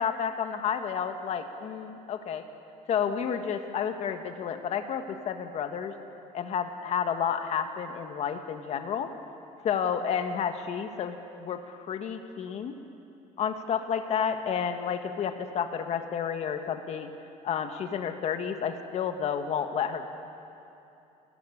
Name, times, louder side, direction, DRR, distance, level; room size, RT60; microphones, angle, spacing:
voice 1, 0.0-2.4 2.9-5.9 6.3-9.1 9.6-12.7 13.4-17.1 17.4-20.1, left 7 dB, 45° left, 7 dB, 1.6 m, -31 dB
30.0 x 14.0 x 9.9 m, 2.9 s
cardioid pair, 140°, 15 cm